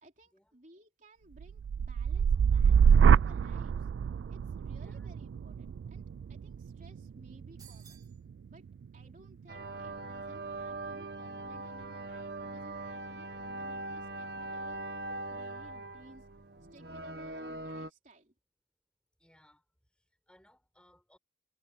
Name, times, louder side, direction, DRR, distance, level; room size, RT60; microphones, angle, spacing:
voice 1, 0.0-3.9 4.3-8.0 8.5-8.7 8.9-14.9 15.3-16.3 16.7-18.3, right 1 dB, 45° right, 3.6 m, -58 dB
sound 1, 1.4-9.4 9.9-10.4, right 7 dB, 85° right, 0.3 m, -27 dB
voice 2, 4.7-5.1 9.0-9.1 17.2-17.4 19.2-19.6 20.0-21.2, left 1 dB, 5° left, 7.0 m, -65 dB
sound 2, 7.6-8.2, right 7 dB, 20° right, 2.8 m, -56 dB
sound 3, 9.5-17.9, right 2 dB, 60° right, 1.1 m, -41 dB
head